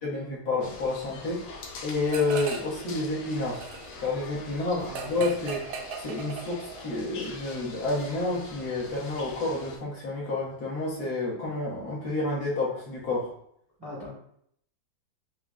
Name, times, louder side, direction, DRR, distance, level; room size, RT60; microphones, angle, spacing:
voice 1, 0.0-3.7 4.0-5.6 6.0-13.3, left 2 dB, 60° left, -6 dB, 1.4 m, -30 dB
sound 1, 0.6-9.8, left 4 dB, 90° left, 1.5 m, -44 dB
sound 2, 2.1-2.8 3.1-6.9, right 5 dB, 70° right, 0.9 m, -39 dB
voice 2, 4.8-5.2 13.8-14.1, left 1 dB, 20° right, -6 dB, 0.7 m, -39 dB
6.1 x 2.1 x 2.3 m, 0.68 s
omnidirectional pair, 2.1 m